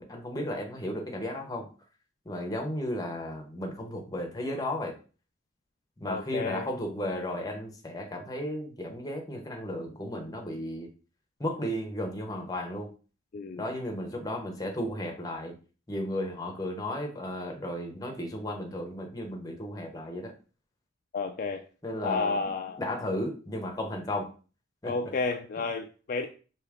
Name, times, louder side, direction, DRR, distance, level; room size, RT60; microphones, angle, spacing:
voice 1, 0.0-1.7 2.3-4.9 6.0-10.9 11.4-12.9 13.6-15.6 15.9-20.3 21.8-22.4 22.8-24.3 24.8-24.9, left 1 dB, 20° left, 2 dB, 0.7 m, -34 dB
voice 2, 6.1-6.7 13.3-13.6 21.1-21.6 22.0-22.8 24.8-26.3, left 4 dB, 45° left, 5 dB, 0.3 m, -31 dB
4.8 x 2.8 x 3.5 m, 0.37 s
head